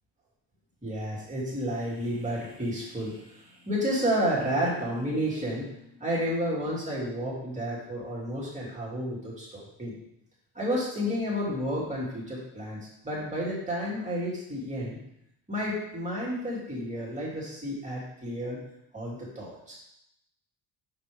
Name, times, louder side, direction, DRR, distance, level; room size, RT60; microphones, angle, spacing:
voice 1, 0.8-9.9 10.5-15.0 15.5-18.6 18.9-19.7, equal, 20° right, -6 dB, 2.8 m, -31 dB
6.4 x 5.8 x 3.5 m, 0.80 s
cardioid pair, 105°, 39 cm